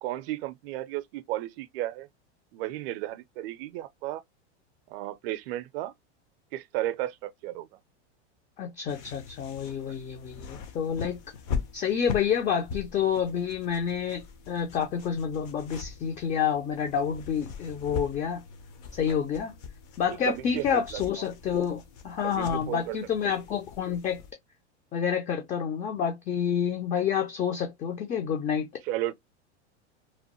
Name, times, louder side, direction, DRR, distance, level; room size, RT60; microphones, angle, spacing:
voice 1, 0.0-2.1 2.5-4.2 4.9-5.9 6.5-7.7 9.9-10.0 19.1-19.2 20.0-21.0 22.2-23.0 28.9-29.1, right 15 dB, 55° right, 0.5 m, -34 dB
voice 2, 8.6-11.2 11.7-18.4 18.9-19.6 20.0-24.2 24.9-28.8, left 8 dB, 20° left, 0.4 m, -29 dB
sound 1, 8.9-24.3, left 6 dB, 50° left, 0.8 m, -41 dB
3.0 x 2.0 x 2.9 m
hypercardioid pair, 120°, 35 cm